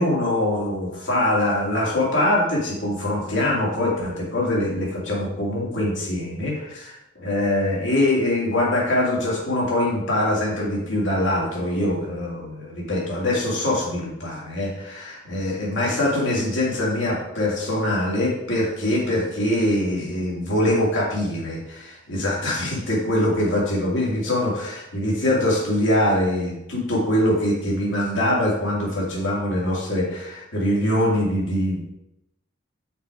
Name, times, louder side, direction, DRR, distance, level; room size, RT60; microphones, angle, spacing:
voice 1, 0.0-31.8, left 1 dB, 75° left, -4 dB, 2.4 m, -23 dB
5.8 x 4.7 x 4.8 m, 0.87 s
head